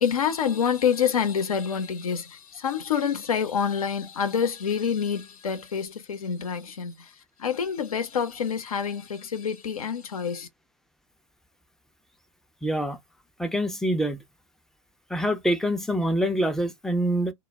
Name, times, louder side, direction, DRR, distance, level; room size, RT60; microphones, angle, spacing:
voice 1, 0.0-7.1 7.4-10.5, left 7 dB, 80° left, 0.6 m, -27 dB
voice 2, 12.6-13.0 13.4-14.2 15.1-17.3, equal, ahead, 0.4 m, -25 dB
2.2 x 2.0 x 3.3 m
hypercardioid pair, 100°, 18 cm